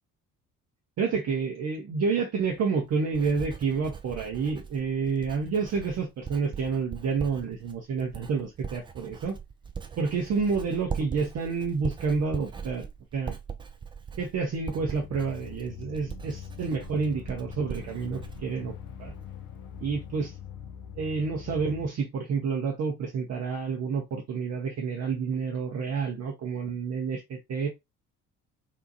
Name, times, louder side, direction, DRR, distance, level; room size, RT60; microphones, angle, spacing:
voice 1, 1.0-9.4 10.0-12.9 13.1-13.4 14.2-18.7 19.0-19.1 19.8-20.3 21.0-27.7, right 5 dB, 35° right, 0.8 m, -29 dB
Writing, 2.4-19.5 19.7-20.2, right 6 dB, 10° right, 0.3 m, -41 dB
sound 1, 14.8-21.9, left 9 dB, 50° left, 0.6 m, -43 dB
2.7 x 2.3 x 2.6 m
figure-of-eight pair, 50°, 45 cm